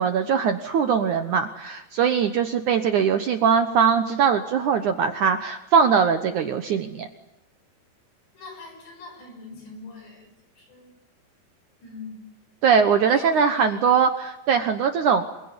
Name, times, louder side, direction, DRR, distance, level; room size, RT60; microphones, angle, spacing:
voice 1, 0.0-7.1 12.6-15.3, right 6 dB, 70° right, 7 dB, 2.0 m, -21 dB
voice 2, 8.4-10.9 11.8-12.2 13.0-13.8, left 3 dB, 85° left, 3 dB, 8.8 m, -42 dB
27.0 x 22.0 x 9.7 m, 0.95 s
omnidirectional pair, 4.9 m